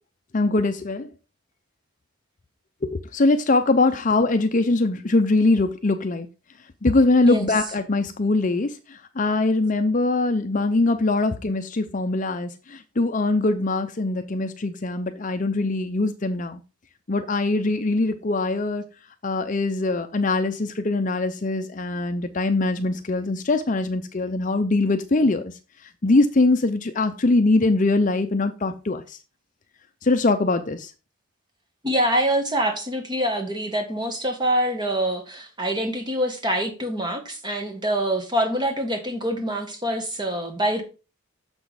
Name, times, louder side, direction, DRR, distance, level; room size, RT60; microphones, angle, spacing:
voice 1, 0.3-1.1 2.9-6.3 6.8-8.7 9.2-16.6 17.1-18.8 19.2-25.5 26.0-29.0 30.0-30.9, left 2 dB, 35° left, 0.5 m, -22 dB
voice 2, 31.8-40.8, right 1 dB, 20° right, 1.6 m, -25 dB
6.9 x 6.2 x 4.7 m
head